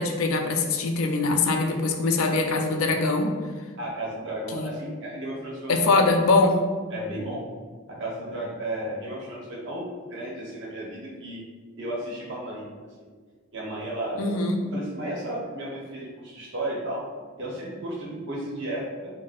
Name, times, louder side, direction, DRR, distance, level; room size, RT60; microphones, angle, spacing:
voice 1, 0.0-3.3 4.5-4.7 5.7-6.6 14.2-14.6, left 3 dB, 70° left, 4 dB, 0.4 m, -22 dB
voice 2, 3.8-6.0 6.9-7.4 7.9-11.4 11.8-12.6 13.5-14.3 14.7-17.0 17.4-19.1, right 1 dB, 55° right, -4 dB, 0.8 m, -33 dB
3.9 x 2.0 x 2.4 m, 1.5 s
head